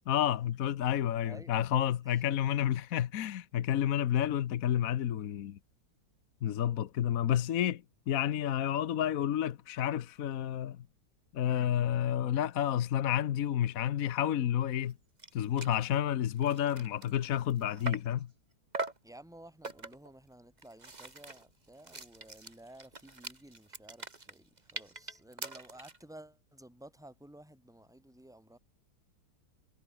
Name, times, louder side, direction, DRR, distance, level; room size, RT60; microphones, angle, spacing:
voice 1, 0.1-5.6 6.4-10.9 11.3-15.0 15.3-18.3, left 10 dB, 60° left, 1.1 m, -30 dB
sound 1, 14.9-15.0 15.2-15.3 15.6-15.8 16.2-18.2 18.7-19.1 19.6-20.1 20.6-26.0, right 3 dB, 25° right, 2.2 m, -43 dB
voice 2, 19.0-28.6, right 1 dB, ahead, 3.9 m, -54 dB
omnidirectional pair, 1.9 m